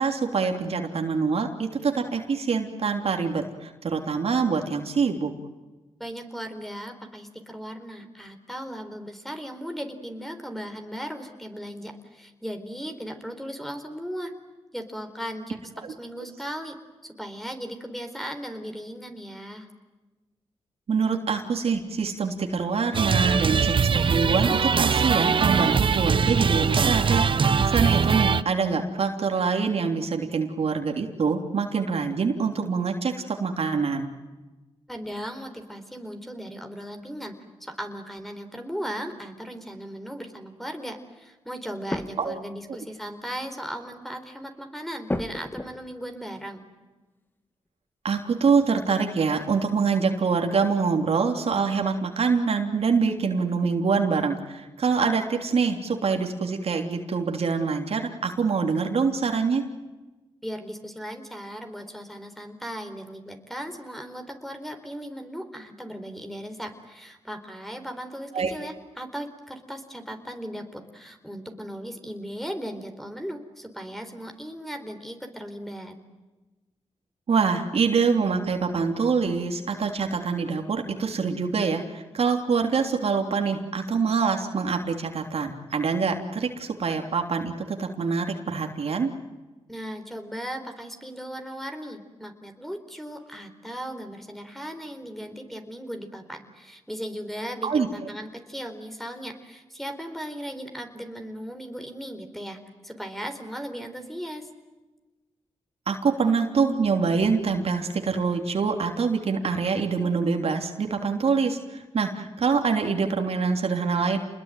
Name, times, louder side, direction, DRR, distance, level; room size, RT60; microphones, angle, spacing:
voice 1, 0.0-5.3 15.8-15.9 20.9-34.1 42.2-42.4 48.0-59.6 68.3-68.5 77.3-89.1 97.6-97.9 105.9-114.2, right 5 dB, 65° right, 4 dB, 3.3 m, -25 dB
voice 2, 6.0-14.3 14.7-15.6 16.0-16.7 17.0-19.7 34.9-37.3 37.6-46.6 60.4-76.0 89.7-104.5, equal, ahead, 6 dB, 4.3 m, -37 dB
sound 1, 22.9-28.4, right 6 dB, 50° right, 0.8 m, -22 dB
sound 2, 38.2-38.3 39.2-39.6 41.9-42.4 42.8-42.9 43.2-43.3 43.9-44.0 45.1-46.0 48.2-48.3 48.6-49.2 49.6-49.7, left 1 dB, 20° left, 1.9 m, -34 dB
28.5 x 21.0 x 9.2 m, 1.2 s
cardioid pair, 70°, 11 cm